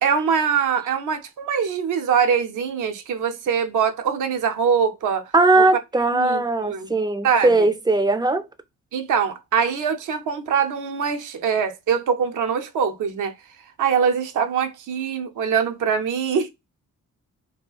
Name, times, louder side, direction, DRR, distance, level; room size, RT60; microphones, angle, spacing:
voice 1, 0.0-5.3 5.6-5.7 6.1-6.9 7.2-7.7 8.9-13.3 13.8-16.5, right 7 dB, 65° right, 0.5 m, -23 dB
voice 2, 5.3-8.4, right 2 dB, 15° right, 0.4 m, -19 dB
2.8 x 2.3 x 2.3 m
cardioid pair, 65°, 34 cm